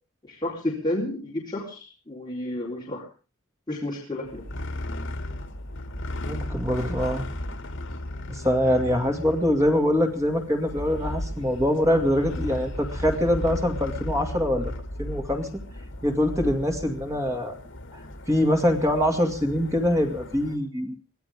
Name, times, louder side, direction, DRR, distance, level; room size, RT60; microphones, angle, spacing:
voice 1, 0.2-3.0 3.7-4.5, left 1 dB, 20° left, -5 dB, 3.9 m, -31 dB
sound 1, 4.3-20.6, left 1 dB, 60° left, 2.3 m, -35 dB
voice 2, 6.2-7.2 8.3-14.7 15.0-15.5 16.0-17.6 18.3-20.9, equal, 15° right, 3 dB, 2.3 m, -24 dB
23.5 x 16.5 x 3.6 m, 0.36 s
head